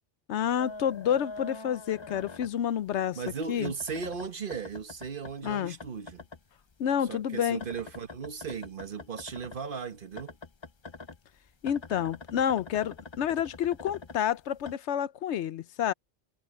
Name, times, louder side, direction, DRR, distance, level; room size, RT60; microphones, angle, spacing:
voice 1, 0.3-3.2 3.5-3.7 5.4-5.8 6.8-7.6 11.6-15.9, left 9 dB, 75° left, 0.9 m, -29 dB
sound 1, 0.6-2.9 3.2-6.4 6.7-9.6 10.1-14.8, left 3 dB, 30° left, 0.6 m, -45 dB
voice 2, 3.1-6.2 7.0-10.3, right 5 dB, 50° right, 1.2 m, -37 dB
omnidirectional pair, 1.2 m